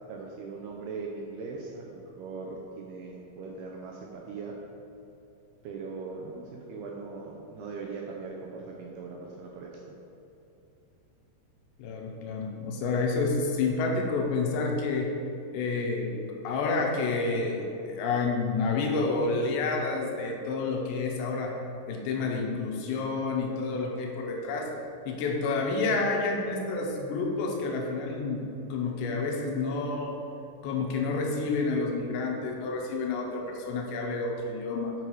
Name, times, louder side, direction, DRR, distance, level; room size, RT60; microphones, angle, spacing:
voice 1, 0.1-4.6 5.6-10.0, right 4 dB, 85° right, -1 dB, 2.3 m, -40 dB
voice 2, 11.8-15.1 15.5-16.1 16.4-21.6 21.9-24.7 25.1-28.4 28.7-30.2 30.6-34.9, left 3 dB, 80° left, 1 dB, 3.0 m, -29 dB
7.8 x 6.4 x 4.6 m, 2.9 s
omnidirectional pair, 5.2 m